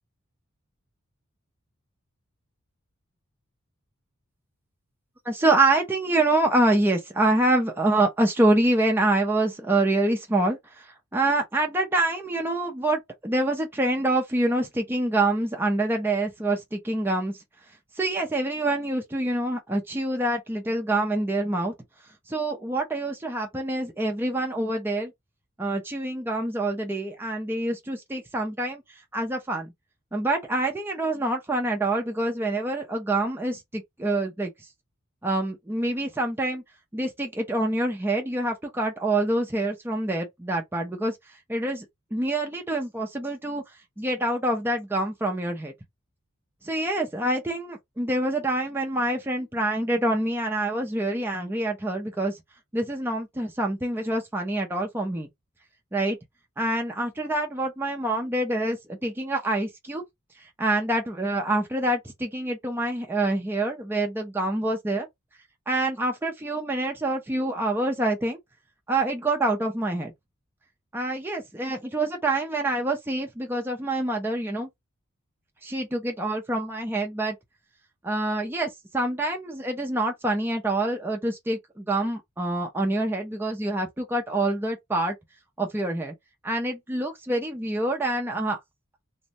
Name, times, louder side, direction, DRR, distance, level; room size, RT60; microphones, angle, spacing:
voice 1, 5.3-17.4 18.0-21.7 22.3-25.1 25.6-29.7 30.1-34.5 35.2-36.6 36.9-41.9 42.1-43.6 44.0-45.7 46.6-52.4 52.7-55.3 55.9-56.2 56.6-60.0 60.4-65.1 65.7-68.4 68.9-70.1 70.9-74.7 75.6-77.4 78.0-85.2 85.6-86.1 86.4-88.6, right 2 dB, 10° right, 0.5 m, -26 dB
3.0 x 2.1 x 2.6 m
head